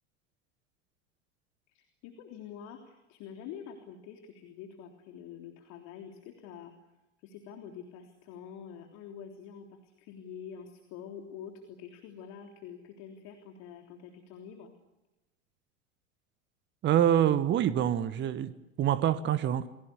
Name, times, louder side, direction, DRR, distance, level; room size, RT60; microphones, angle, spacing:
voice 1, 1.7-6.7 7.2-14.7, left 8 dB, 45° left, 3.4 m, -46 dB
voice 2, 16.8-19.7, right 10 dB, 30° right, 1.3 m, -26 dB
29.5 x 22.0 x 7.0 m
figure-of-eight pair, 85°, 36 cm